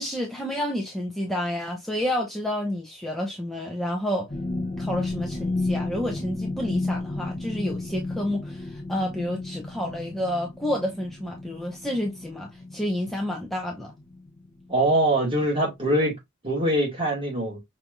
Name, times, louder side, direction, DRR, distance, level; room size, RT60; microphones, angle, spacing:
voice 1, 0.0-4.3 4.8-13.9, left 1 dB, ahead, 0.6 m, -29 dB
sound 1, 4.3-15.0 15.3-15.6 16.0-16.1, left 2 dB, 35° left, 0.7 m, -33 dB
voice 2, 14.7-16.1 16.4-17.6, right 1 dB, 25° right, 2.1 m, -23 dB
5.7 x 3.3 x 2.5 m
head